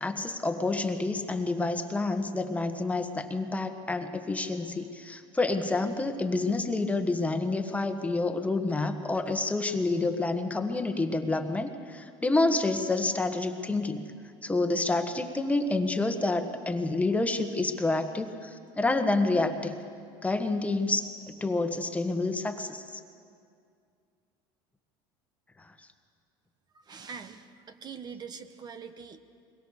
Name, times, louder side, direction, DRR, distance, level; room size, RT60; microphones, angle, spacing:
voice 1, 0.0-14.0 14.4-19.8 20.2-23.0 25.6-25.7, left 2 dB, 10° left, 6 dB, 1.5 m, -28 dB
voice 2, 26.8-29.2, right 6 dB, 35° right, 9 dB, 1.2 m, -43 dB
22.5 x 21.5 x 6.7 m, 2.3 s
supercardioid pair, 105°, 12 cm